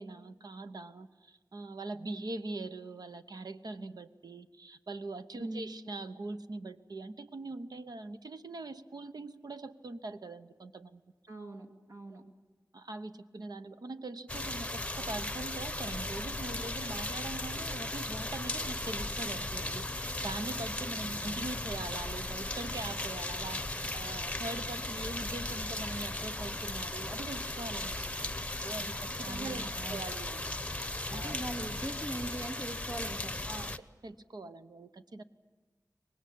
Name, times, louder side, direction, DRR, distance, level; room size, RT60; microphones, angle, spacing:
voice 1, 0.0-11.0 12.1-12.2 12.7-28.4 28.6-30.4 31.1-31.4 33.5-33.7 34.0-35.2, right 2 dB, 85° right, 9 dB, 1.0 m, -42 dB
voice 2, 5.4-5.7 11.3-12.2 21.0-21.5 29.2-30.0 31.1-33.4, right 1 dB, 60° right, 1 dB, 2.2 m, -41 dB
sound 1, 14.3-33.8, left 2 dB, 20° left, 0.8 m, -37 dB
24.5 x 20.0 x 8.6 m, 1.3 s
wide cardioid pair, 80°, 7 cm